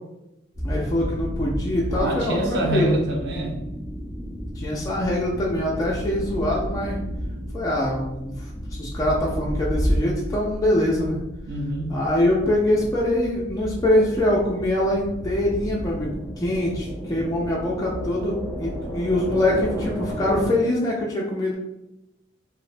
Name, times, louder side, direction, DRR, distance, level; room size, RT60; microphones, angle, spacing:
sound 1, 0.5-20.5, equal, ahead, 0.8 m, -32 dB
voice 1, 0.6-3.0 4.6-7.0 7.5-11.2 11.9-21.6, left 1 dB, 15° left, -5 dB, 0.3 m, -24 dB
voice 2, 1.9-3.6 11.5-12.0, right 1 dB, 60° right, 0 dB, 0.5 m, -26 dB
3.0 x 2.0 x 2.4 m, 0.92 s
head